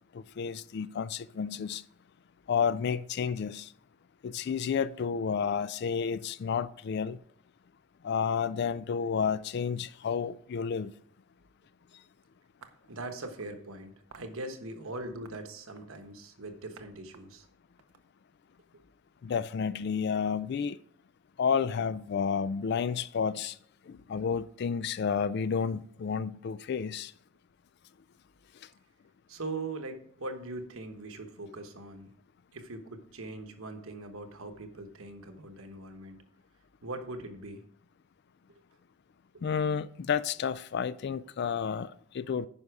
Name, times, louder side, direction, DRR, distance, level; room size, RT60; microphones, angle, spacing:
voice 1, 0.1-1.8 2.5-3.7 4.2-7.2 8.0-10.9 19.2-20.8 21.4-23.6 23.9-27.1 39.4-42.5, left 6 dB, 50° left, 0.3 m, -31 dB
sound 1, 12.6-13.5 14.1-14.4 15.0-16.1 16.8-16.9 17.1-18.6, right 6 dB, 85° right, 0.8 m, -55 dB
voice 2, 12.9-17.5 29.3-32.1 32.5-36.2 36.8-37.6 38.5-38.6 39.3-39.4, right 2 dB, 70° right, 1.1 m, -41 dB
9.8 x 5.5 x 4.8 m
head